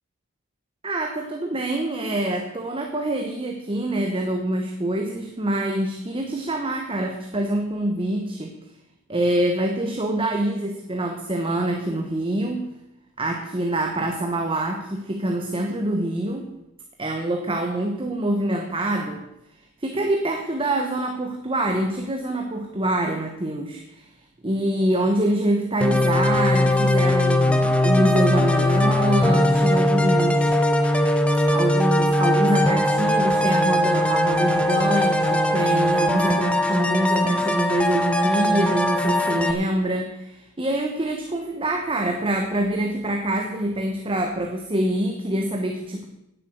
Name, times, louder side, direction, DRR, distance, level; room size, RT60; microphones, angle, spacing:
voice 1, 0.8-8.6 9.1-12.7 13.2-16.5 17.0-19.2 19.8-24.1 24.4-30.5 30.8-31.0 31.5-46.1, right 1 dB, 25° right, 3 dB, 1.0 m, -25 dB
sound 1, 25.8-39.5, left 1 dB, 5° left, 0.9 m, -20 dB
10.5 x 8.0 x 7.9 m, 0.86 s
head